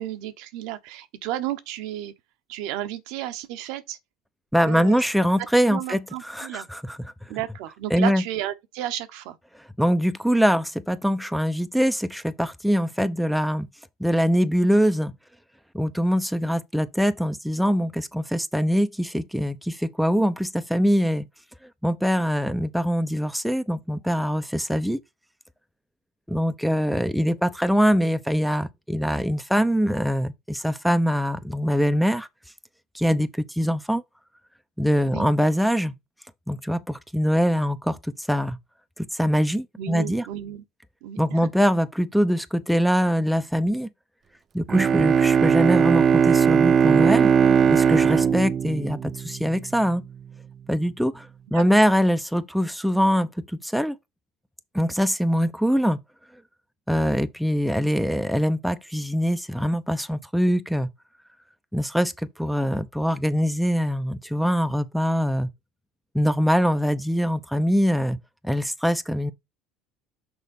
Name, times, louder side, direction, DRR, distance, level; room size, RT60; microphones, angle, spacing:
voice 1, 0.0-2.1 2.5-4.0 4.6-5.0 5.4-6.7 7.3-9.4 35.0-35.3 39.8-40.6 41.0-41.5 51.5-51.6, right 13 dB, 75° right, 1.0 m, -33 dB
voice 2, 4.5-7.0 7.9-8.2 9.8-13.7 14.0-15.1 15.7-21.3 21.8-25.0 26.3-32.3 32.9-34.0 34.8-35.9 36.5-38.6 39.0-40.3 41.2-43.9 44.5-47.3 47.7-50.0 50.7-54.0 54.7-56.0 56.9-60.9 61.7-65.5 66.1-68.2 68.4-69.3, equal, ahead, 0.7 m, -23 dB
Bowed string instrument, 44.7-49.6, right 7 dB, 35° right, 0.3 m, -19 dB
6.3 x 4.0 x 5.4 m
supercardioid pair, 105°, 0 cm